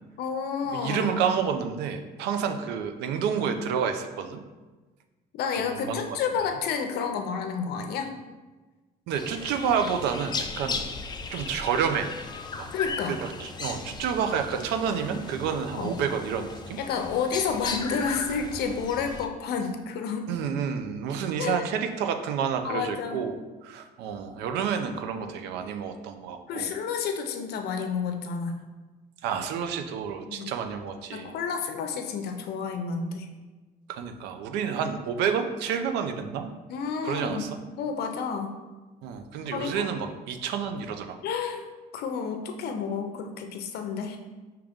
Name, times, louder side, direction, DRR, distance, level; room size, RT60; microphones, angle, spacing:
voice 1, 0.2-1.2 5.3-8.1 12.7-13.2 15.7-16.0 16.8-20.3 21.4-21.6 22.6-23.2 26.5-28.6 30.2-30.5 31.1-33.3 36.7-37.5 37.8-38.6 39.5-39.9 41.2-41.6 41.9-44.2, left 6 dB, 70° left, 5 dB, 0.6 m, -30 dB
voice 2, 0.7-4.4 5.7-6.2 9.1-10.8 11.3-12.1 12.6-12.7 13.2-16.8 20.3-26.7 29.2-31.3 33.9-36.5 37.0-37.5 39.0-41.2, right 7 dB, 90° right, 7 dB, 0.5 m, -29 dB
sound 1, 9.1-19.3, left 4 dB, 25° left, 0.4 m, -37 dB
5.0 x 3.0 x 3.6 m, 1.2 s
cardioid pair, 110°, 17 cm